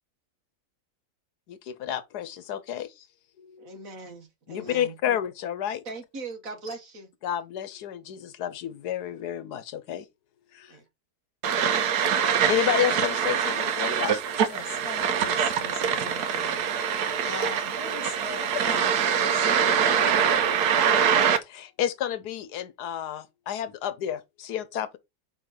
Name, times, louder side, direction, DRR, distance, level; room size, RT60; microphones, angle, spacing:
voice 1, 1.5-3.1 4.5-5.8 7.2-10.1 10.5-10.8 11.9-14.4 18.4-18.6 21.4-25.0, left 10 dB, 90° left, 1.3 m, -31 dB
voice 2, 3.6-5.2 5.9-7.1 10.7-10.9, right 3 dB, 60° right, 1.8 m, -40 dB
sound 1, 11.4-21.4, right 7 dB, 75° right, 1.3 m, -24 dB
voice 3, 14.4-16.6 17.2-20.2, left 4 dB, 70° left, 1.9 m, -41 dB
5.1 x 3.9 x 4.9 m
omnidirectional pair, 1.7 m